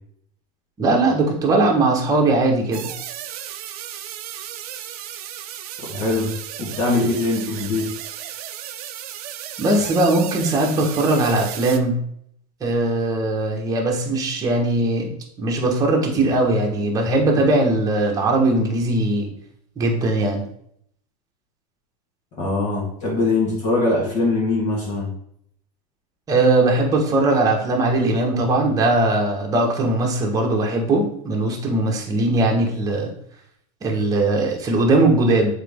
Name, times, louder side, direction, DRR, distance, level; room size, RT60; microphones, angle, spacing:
voice 1, 0.8-2.9 9.6-12.0 12.6-19.3 19.8-20.4 26.3-33.1 33.8-35.6, right 2 dB, 20° right, -1 dB, 1.3 m, -20 dB
sound 1, 2.7-11.8, right 11 dB, 70° right, 0.7 m, -34 dB
voice 2, 5.8-6.3 6.6-7.9 22.4-25.1, left 2 dB, 35° left, -4 dB, 1.9 m, -22 dB
7.5 x 4.2 x 3.6 m, 0.69 s
supercardioid pair, 155°, 20 cm